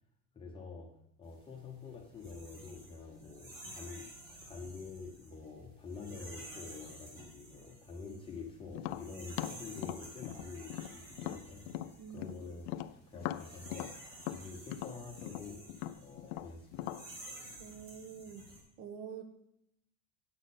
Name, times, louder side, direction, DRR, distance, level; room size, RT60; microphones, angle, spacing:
voice 1, 0.3-4.1 4.4-11.7 12.1-12.7 12.9-14.0 14.3-15.7 16.0-17.0, left 4 dB, 10° left, -1 dB, 0.6 m, -47 dB
sound 1, 1.3-18.6, right 1 dB, 45° right, 3.0 m, -52 dB
Tap, 8.7-12.4 12.7-17.1, left 14 dB, 55° left, 0.5 m, -40 dB
voice 2, 12.0-12.3 17.6-18.4 18.8-19.3, right 7 dB, 70° right, 6 dB, 1.7 m, -46 dB
9.3 x 7.7 x 4.1 m, 0.75 s
cardioid pair, 165°, 48 cm